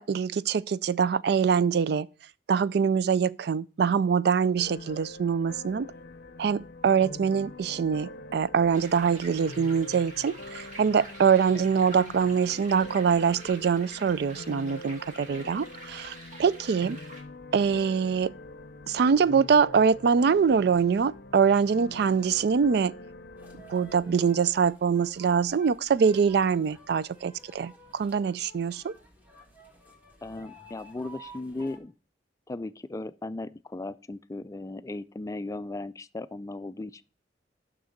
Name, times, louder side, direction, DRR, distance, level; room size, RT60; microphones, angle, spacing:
voice 1, 0.0-2.1 2.5-5.9 6.4-17.0 17.5-18.3 18.9-22.9 23.7-28.9, right 6 dB, 65° right, 0.3 m, -24 dB
sound 1, 4.6-24.2, left 2 dB, 60° left, 0.6 m, -45 dB
sound 2, 8.7-17.2, right 2 dB, 45° right, 1.9 m, -46 dB
sound 3, 23.4-31.8, right 1 dB, 10° right, 1.6 m, -52 dB
voice 2, 30.2-31.9 32.5-37.0, left 2 dB, 20° left, 0.3 m, -37 dB
6.4 x 6.0 x 7.1 m
head